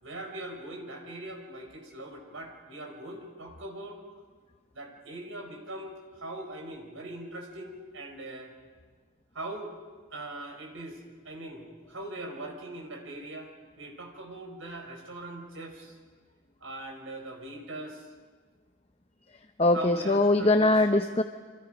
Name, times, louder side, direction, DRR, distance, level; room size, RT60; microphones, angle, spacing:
voice 1, 0.0-4.0 4.7-8.5 9.3-9.7 10.1-11.0 11.2-13.5 13.8-15.9 16.6-18.0 19.7-20.7, right 2 dB, 85° right, 3 dB, 5.0 m, -41 dB
voice 2, 19.6-21.2, left 2 dB, 30° left, 6 dB, 0.8 m, -22 dB
28.5 x 26.0 x 5.2 m, 1.5 s
head